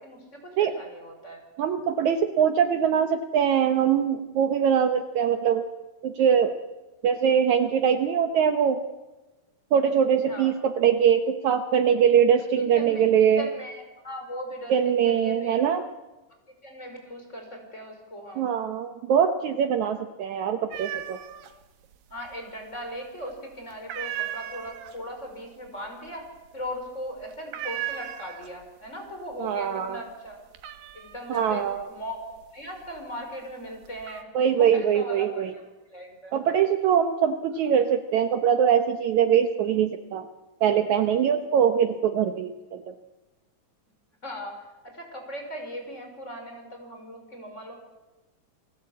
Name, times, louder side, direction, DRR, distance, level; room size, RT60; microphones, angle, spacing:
voice 1, 0.0-1.4 10.3-10.6 12.6-13.1 13.4-15.5 16.6-18.5 22.1-30.4 30.9-32.2 32.5-34.3 34.6-35.6 35.9-36.4 44.2-47.7, equal, 20° left, 3 dB, 5.4 m, -38 dB
voice 2, 1.6-5.7 6.0-6.6 7.0-8.8 9.7-13.5 14.7-15.8 18.4-21.2 29.4-30.0 31.3-31.9 34.4-35.5 36.3-40.3 40.6-42.9, right 8 dB, 70° right, 8 dB, 2.2 m, -22 dB
sound 1, 20.7-21.5 21.8-22.6 23.0-23.3 23.7-28.8 29.1-29.7 30.0-33.1 33.6-34.2, right 12 dB, 85° right, 3.3 m, -37 dB
29.0 x 20.0 x 8.5 m, 1.1 s
omnidirectional pair, 3.9 m